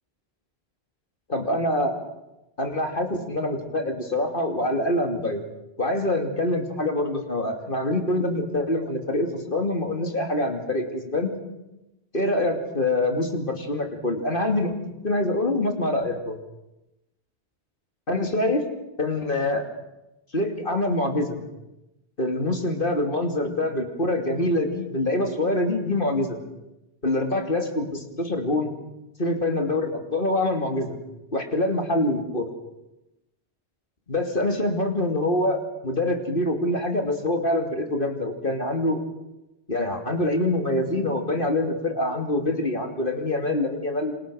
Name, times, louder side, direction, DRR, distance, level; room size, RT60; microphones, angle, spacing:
voice 1, 1.3-2.0 2.6-5.4 5.8-11.4 12.1-14.7 15.0-16.3 18.1-18.6 19.0-19.7 20.3-21.4 22.2-26.4 27.0-28.7 29.2-31.0 31.3-32.5 34.1-39.0 39.7-44.1, left 1 dB, 55° left, 4 dB, 3.1 m, -25 dB
28.0 x 26.5 x 6.5 m, 0.95 s
omnidirectional pair, 1.1 m